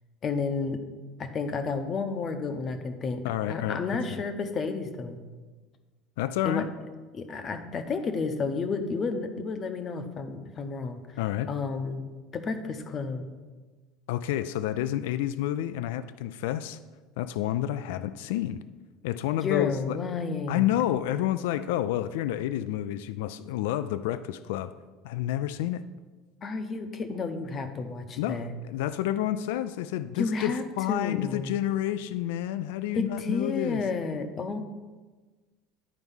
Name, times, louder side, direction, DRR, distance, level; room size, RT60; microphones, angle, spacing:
voice 1, 0.2-0.8 1.2-5.2 6.4-6.6 7.1-11.2 11.5-13.3 19.4-20.6 26.4-28.5 30.2-31.5 32.9-34.6, left 4 dB, 25° left, 8 dB, 0.7 m, -31 dB
voice 2, 3.2-3.8 6.2-6.7 11.2-11.5 14.1-16.8 17.2-18.6 19.0-20.0 20.5-24.7 25.0-25.8 28.2-33.8, left 12 dB, 90° left, 13 dB, 0.4 m, -29 dB
9.9 x 4.6 x 5.5 m, 1.3 s
cardioid pair, 160°, 0 cm